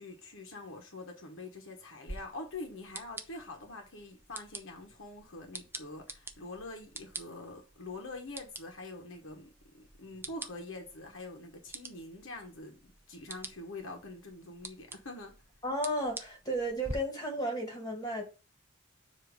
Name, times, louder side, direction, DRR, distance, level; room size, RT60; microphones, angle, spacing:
voice 1, 0.0-15.3, left 2 dB, 65° left, 1.2 m, -45 dB
Torch Click-Assorted, 2.1-16.9, right 2 dB, 10° right, 0.5 m, -48 dB
voice 2, 15.6-18.2, right 1 dB, 20° left, 1.9 m, -33 dB
7.1 x 2.8 x 5.1 m
head